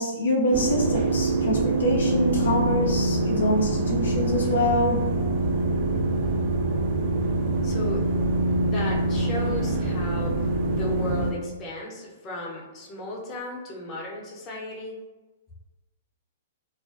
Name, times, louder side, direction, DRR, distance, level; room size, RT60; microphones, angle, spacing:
voice 1, 0.0-5.0, left 1 dB, 80° left, -1 dB, 0.4 m, -25 dB
sound 1, 0.5-11.3, right 2 dB, 50° right, 0.4 m, -24 dB
voice 2, 7.6-8.0 8.6-10.3 10.7-14.9, left 1 dB, 30° left, -2 dB, 0.7 m, -35 dB
2.4 x 2.1 x 2.5 m, 1.2 s
hypercardioid pair, 120°, 0 cm